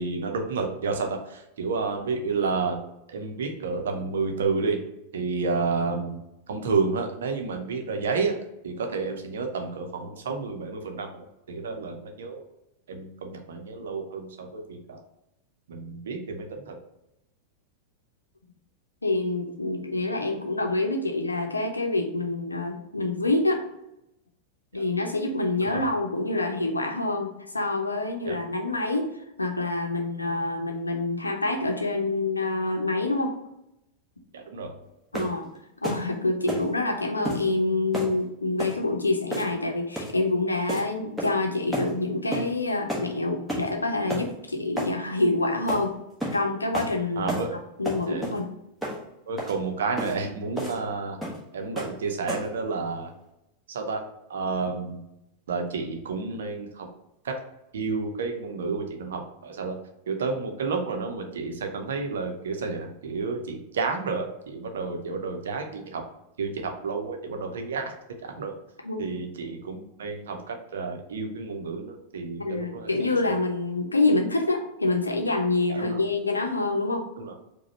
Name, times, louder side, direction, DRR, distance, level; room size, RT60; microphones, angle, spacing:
voice 1, 0.0-2.8 3.1-4.8 5.1-12.5 12.9-15.0 15.7-16.8 24.7-24.8 25.6-25.8 28.2-28.4 34.3-34.8 47.2-47.6 48.1-48.3 49.3-51.2 51.5-53.1 53.7-54.0 54.3-55.0 55.5-56.9 57.2-57.3 57.7-59.8 60.1-66.0 66.4-67.9 68.2-68.5 69.0-73.3 75.7-76.0 77.2-77.3, right 4 dB, 60° right, 3 dB, 0.7 m, -30 dB
voice 2, 19.0-23.6 24.7-29.1 29.4-33.4 35.1-35.5 35.8-45.9 46.3-47.3 47.8-48.5 68.8-69.1 72.4-77.1, left 2 dB, 80° left, 3 dB, 0.7 m, -26 dB
sound 1, 35.1-35.4 35.8-36.0 36.5-36.7 37.2-37.4 37.9-38.1 38.6-38.8 39.3-39.6 39.9-40.2 40.7-40.9 41.2-41.4 41.7-41.9 42.3-42.5 42.9-43.1 43.5-43.7 44.1-44.3 44.8-44.9 45.7-45.8 46.2-46.4 46.7-46.9 47.3-47.5 47.8-48.4 48.8-49.0 49.4-49.5 50.0-50.1 50.6-50.8 51.2-51.4 51.8-52.0 52.3-52.6, equal, 5° right, 1.2 m, -31 dB
4.8 x 2.3 x 4.1 m, 0.85 s
figure-of-eight pair, 90°, 0 cm